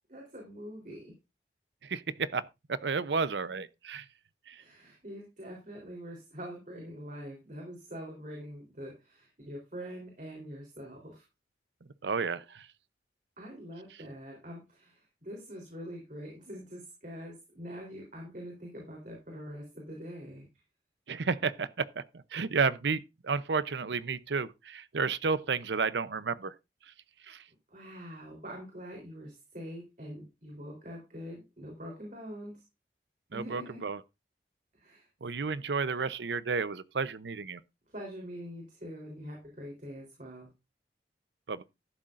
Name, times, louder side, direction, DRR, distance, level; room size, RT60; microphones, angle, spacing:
voice 1, 0.1-1.1 4.6-11.2 13.4-20.6 27.7-32.6 33.3-33.8 34.7-35.1 37.9-40.5, equal, 45° right, 3.6 m, -44 dB
voice 2, 1.9-2.4 2.7-4.0 4.5-4.6 12.0-12.7 21.1-22.0 22.3-26.5 27.3-27.4 33.3-34.0 35.2-37.6 41.5-41.6, right 5 dB, 75° right, 0.6 m, -31 dB
13.0 x 11.5 x 2.5 m
head